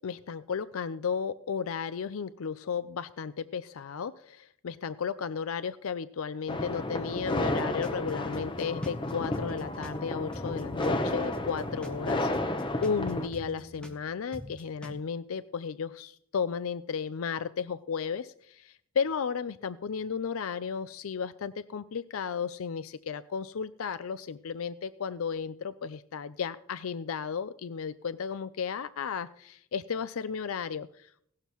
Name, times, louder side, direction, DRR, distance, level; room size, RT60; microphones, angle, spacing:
voice 1, 0.0-12.5 12.8-31.2, left 6 dB, 80° left, 14 dB, 0.5 m, -34 dB
sound 1, 6.5-13.3, left 1 dB, 20° left, 0.9 m, -32 dB
sound 2, 7.5-10.0 10.3-14.0 14.3-15.0, equal, 5° left, 1.6 m, -45 dB
17.0 x 12.0 x 3.0 m, 0.67 s
head